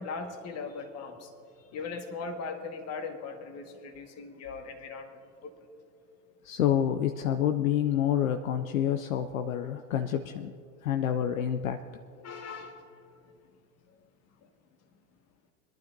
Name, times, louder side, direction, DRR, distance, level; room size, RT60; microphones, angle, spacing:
voice 1, 0.0-1.3 1.6-5.5 12.2-13.1 14.4-14.5, left 4 dB, 35° left, 5 dB, 1.7 m, -39 dB
voice 2, 6.4-10.5 10.8-11.8, left 10 dB, 70° left, 7 dB, 0.7 m, -28 dB
22.0 x 12.0 x 2.7 m, 2.3 s
figure-of-eight pair, 85°, 43 cm